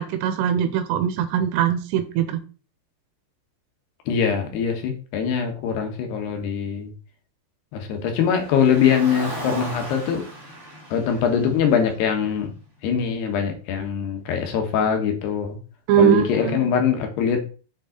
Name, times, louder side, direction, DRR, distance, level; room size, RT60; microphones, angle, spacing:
voice 1, 0.0-2.3 15.9-16.6, right 10 dB, 90° right, 8 dB, 2.9 m, -21 dB
voice 2, 4.1-6.9 7.7-10.2 10.9-12.5 12.8-15.6 16.0-17.5, left 7 dB, 75° left, 4 dB, 3.2 m, -22 dB
Car, 8.2-12.6, right 1 dB, 30° right, 1.3 m, -37 dB
7.0 x 5.3 x 3.8 m, 0.37 s
omnidirectional pair, 4.9 m